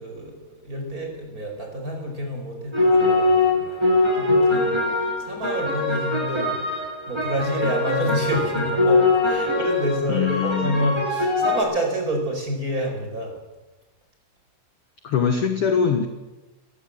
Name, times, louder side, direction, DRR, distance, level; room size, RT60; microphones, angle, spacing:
voice 1, 0.0-6.8 7.1-13.4, equal, 20° right, 2 dB, 5.2 m, -28 dB
sound 1, 2.7-11.6, left 2 dB, 5° right, 7.9 m, -22 dB
voice 2, 10.1-10.8 15.0-16.1, left 7 dB, 60° left, 6 dB, 1.6 m, -22 dB
22.0 x 15.5 x 7.8 m, 1.1 s
omnidirectional pair, 4.3 m